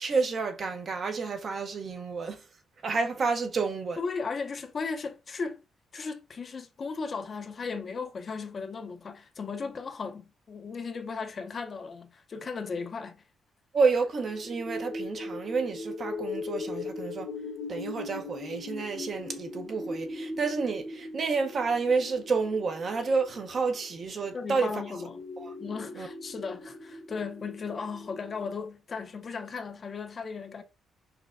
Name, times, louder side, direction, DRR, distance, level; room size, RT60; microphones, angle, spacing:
voice 1, 0.0-2.4 2.8-4.0 13.7-17.3 17.7-24.8 25.4-25.5 26.0-26.1, right 4 dB, 50° right, 0.7 m, -29 dB
voice 2, 4.0-5.6 5.9-13.2 24.3-25.2 25.6-30.6, left 5 dB, 40° left, 0.6 m, -36 dB
sound 1, 14.1-28.5, left 3 dB, 80° left, 1.4 m, -40 dB
5.8 x 2.2 x 2.5 m
cardioid pair, 90°, 0 cm